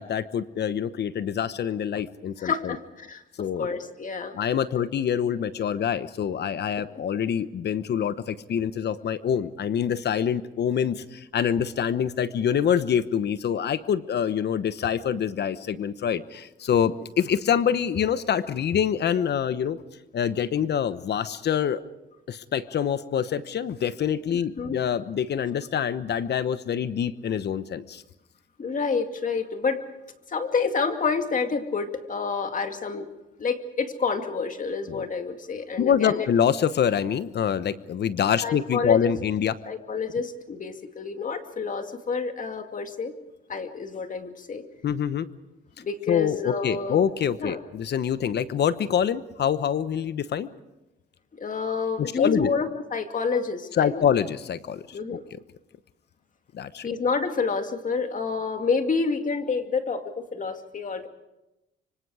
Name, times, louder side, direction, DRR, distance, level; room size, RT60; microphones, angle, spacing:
voice 1, 0.0-2.8 3.4-3.7 4.3-19.8 20.1-21.8 22.3-28.0 34.9-35.0 35.8-39.5 44.8-45.3 46.1-50.5 52.0-52.5 53.8-55.0 56.5-56.9, left 8 dB, 60° left, 14 dB, 1.0 m, -25 dB
voice 2, 3.6-4.4 4.8-4.9 24.6-24.8 28.6-29.8 30.3-33.1 33.4-36.3 38.4-39.1 39.7-43.1 43.5-44.6 45.8-47.0 47.4-47.6 51.4-54.0 54.9-55.2 56.8-61.1, left 5 dB, 40° left, 6 dB, 2.4 m, -28 dB
25.5 x 25.0 x 4.9 m, 0.95 s
cardioid pair, 90°, 20 cm